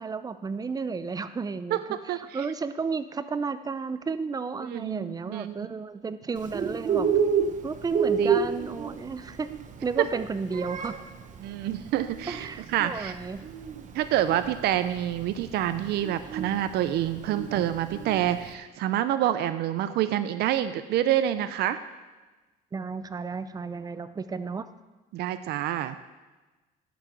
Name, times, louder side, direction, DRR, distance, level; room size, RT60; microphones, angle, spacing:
voice 1, 0.0-7.1 7.6-9.5 9.8-11.0 12.3-13.4 22.7-24.7, right 4 dB, 20° right, 12 dB, 0.5 m, -33 dB
voice 2, 4.6-5.8 8.2-8.4 10.1-10.2 11.4-13.1 13.9-21.8 25.1-26.0, right 12 dB, 75° right, 12 dB, 0.5 m, -27 dB
Bird, 6.4-18.5, right 6 dB, 50° right, 0.9 m, -30 dB
9.7 x 6.0 x 6.8 m, 1.2 s
cardioid pair, 110°, 17 cm